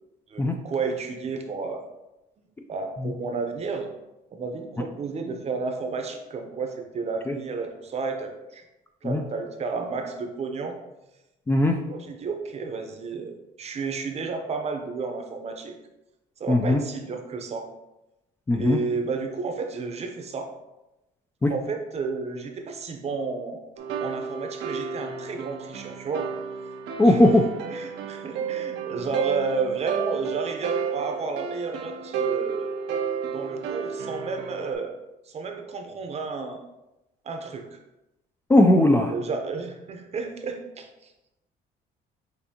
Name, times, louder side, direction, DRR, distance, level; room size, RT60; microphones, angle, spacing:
voice 1, 0.3-1.8 2.4-3.9 4.3-8.6 9.0-10.8 11.8-15.8 16.4-17.7 18.5-20.5 21.5-23.6 24.0-26.3 27.0-27.4 27.7-32.7 33.3-34.9 35.3-36.6 37.2-37.8 39.1-41.1, right 4 dB, 40° right, 5 dB, 0.7 m, -32 dB
voice 2, 11.5-11.8 16.5-16.8 18.5-18.8 21.4-21.5 27.0-27.4 38.5-39.1, left 1 dB, 15° left, 4 dB, 0.3 m, -18 dB
sound 1, 23.8-34.7, right 7 dB, 80° right, 0.6 m, -31 dB
6.6 x 2.7 x 2.8 m, 0.95 s
cardioid pair, 110°, 17 cm